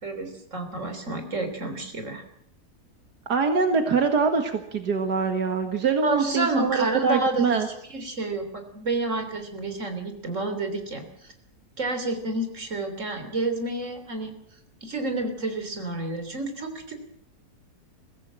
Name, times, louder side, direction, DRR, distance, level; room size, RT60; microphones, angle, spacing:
voice 1, 0.0-2.2 6.0-7.6 7.9-11.1 11.8-14.4 14.8-17.0, right 2 dB, 50° right, 7 dB, 3.8 m, -29 dB
voice 2, 3.3-7.7, right 5 dB, 85° right, 5 dB, 2.2 m, -24 dB
22.5 x 16.5 x 7.6 m, 0.68 s
omnidirectional pair, 1.7 m